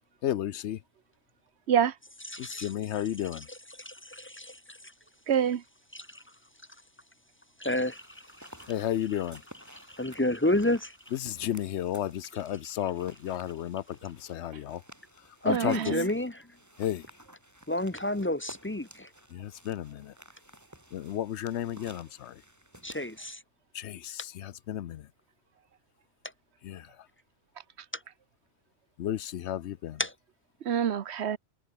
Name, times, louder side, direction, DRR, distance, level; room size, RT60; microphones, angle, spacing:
voice 1, 0.2-0.8 2.4-3.5 8.7-9.4 11.1-14.8 15.4-16.0 16.8-17.1 19.3-20.1 20.9-22.4 23.7-25.1 26.6-27.1 29.0-30.0, left 11 dB, 85° left, 1.0 m, -33 dB
voice 2, 2.3-2.7 3.8-4.8 5.9-6.2 7.6-8.7 9.7-11.0 15.4-16.5 17.7-19.1 22.8-23.4 27.9-28.0 30.0-30.1, left 1 dB, 15° left, 0.6 m, -30 dB
voice 3, 5.3-5.6 15.5-16.1 30.6-31.4, right 8 dB, 75° right, 1.2 m, -26 dB
sound 1, 7.8-23.3, equal, 15° right, 6.5 m, -54 dB
omnidirectional pair, 1.1 m